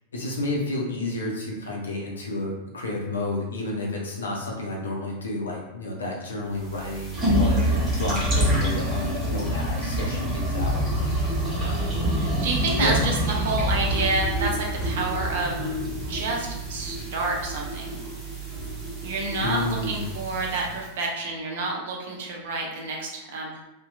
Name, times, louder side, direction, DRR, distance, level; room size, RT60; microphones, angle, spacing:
voice 1, 0.1-11.2 11.6-11.9 12.8-12.9 19.4-20.0, left 2 dB, 70° left, -1 dB, 0.5 m, -31 dB
sound 1, 6.6-20.9, right 1 dB, 25° right, 1.1 m, -27 dB
voice 2, 12.2-15.8 16.1-17.9 19.0-23.5, right 3 dB, 55° right, -1 dB, 0.6 m, -29 dB
2.7 x 2.1 x 2.4 m, 0.91 s
figure-of-eight pair, 90°, 0 cm